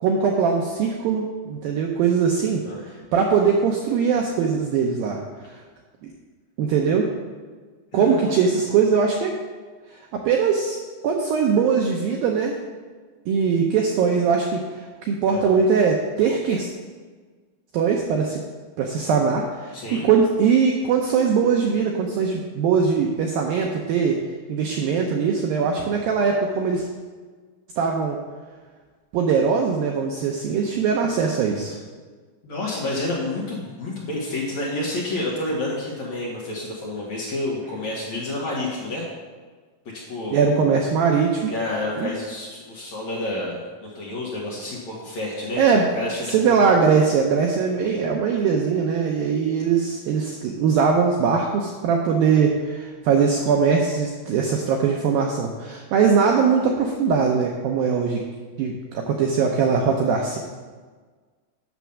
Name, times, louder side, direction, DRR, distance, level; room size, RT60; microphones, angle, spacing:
voice 1, 0.0-2.6 3.1-5.2 6.0-6.1 6.6-7.1 7.9-9.4 10.1-10.8 11.0-12.6 13.3-14.6 15.0-16.7 17.7-18.4 18.8-19.8 20.0-24.2 24.5-26.9 27.8-28.2 29.1-31.8 40.3-41.5 42.0-42.1 45.6-45.9 46.2-58.2 58.6-60.4, right 6 dB, 85° right, 1 dB, 2.1 m, -21 dB
voice 2, 7.9-8.4 15.3-15.5 19.7-20.1 32.4-39.1 39.9-40.4 41.5-46.7, left 2 dB, 55° left, -4 dB, 2.2 m, -29 dB
9.1 x 6.2 x 7.1 m, 1.5 s
omnidirectional pair, 5.1 m